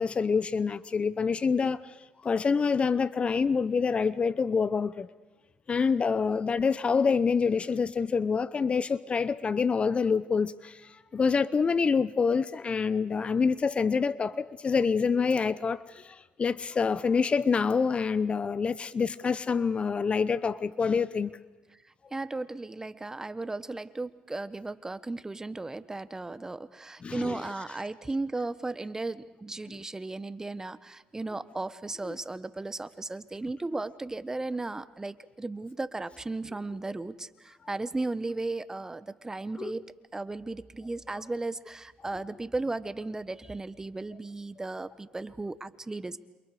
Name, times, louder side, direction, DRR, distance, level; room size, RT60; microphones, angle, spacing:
voice 1, 0.0-1.8 2.2-5.1 5.7-10.8 11.1-21.4 27.0-27.4 32.0-32.2 39.6-39.7, left 5 dB, 35° left, 0.8 m, -26 dB
voice 2, 22.1-39.8 40.1-46.2, right 2 dB, 15° right, 1.2 m, -35 dB
28.0 x 28.0 x 5.0 m
supercardioid pair, 80°, 3 cm